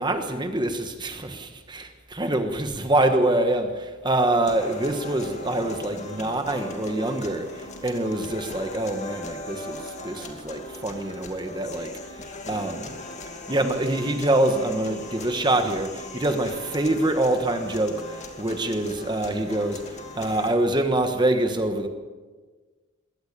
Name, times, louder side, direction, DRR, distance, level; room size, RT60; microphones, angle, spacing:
voice 1, 0.0-11.9 12.5-12.9 13.5-19.8 20.1-21.9, right 1 dB, 20° right, 7 dB, 1.3 m, -25 dB
sound 1, 4.5-20.5, left 2 dB, 30° left, 2.4 m, -39 dB
22.0 x 17.0 x 6.8 m, 1.4 s
head